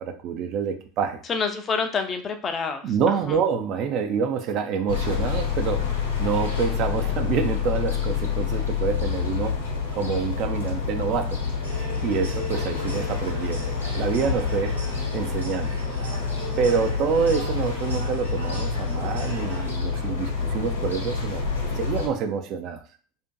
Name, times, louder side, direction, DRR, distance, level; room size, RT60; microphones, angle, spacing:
voice 1, 0.0-1.2 2.8-5.8 6.2-9.6 9.9-11.4 12.0-14.7 15.1-15.8 16.6-21.4 21.7-22.8, right 6 dB, 50° right, 7 dB, 0.3 m, -27 dB
voice 2, 1.3-3.4, left 5 dB, 30° left, 6 dB, 0.4 m, -28 dB
sound 1, 4.9-22.1, left 6 dB, 90° left, 0.8 m, -27 dB
sound 2, 11.6-19.7, right 1 dB, 90° right, 0.7 m, -39 dB
2.5 x 2.5 x 2.2 m, 0.42 s
figure-of-eight pair, 80°, 0 cm